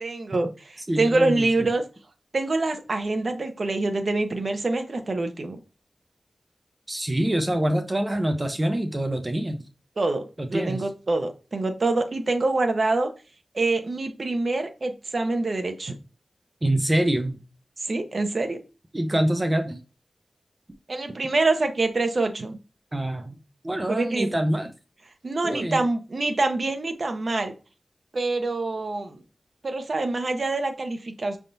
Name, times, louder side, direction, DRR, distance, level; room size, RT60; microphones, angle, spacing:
voice 1, 0.0-1.8 2.3-5.6 10.0-10.2 10.5-13.1 13.5-15.9 17.8-18.6 20.9-22.6 23.9-24.3 25.2-27.5 28.1-29.2 29.6-31.4, right 2 dB, 55° right, 0.8 m, -25 dB
voice 2, 0.9-1.5 6.9-9.6 10.4-10.8 16.6-17.4 18.9-19.8 22.9-23.4 23.6-24.7 25.4-25.8, right 1 dB, 25° right, 0.6 m, -25 dB
5.7 x 3.5 x 2.6 m
wide cardioid pair, 100°, 0 cm